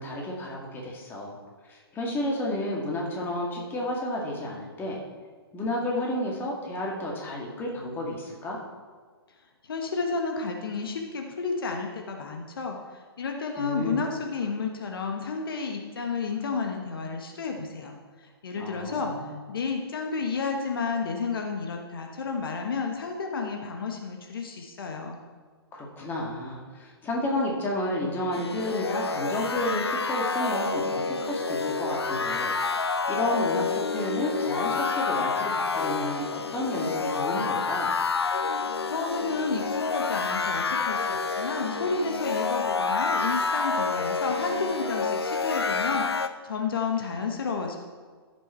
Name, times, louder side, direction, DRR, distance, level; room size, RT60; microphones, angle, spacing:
voice 1, 0.0-1.4 1.6-5.0 5.5-8.6 13.6-14.0 18.6-19.3 25.7-32.6 33.1-37.9, left 1 dB, 15° left, -2 dB, 2.2 m, -31 dB
voice 2, 9.6-25.2 38.8-47.8, left 4 dB, 60° left, 3 dB, 1.4 m, -31 dB
sound 1, 28.3-46.3, left 4 dB, 80° left, 0.6 m, -28 dB
14.5 x 6.8 x 4.4 m, 1.5 s
figure-of-eight pair, 125°, 13 cm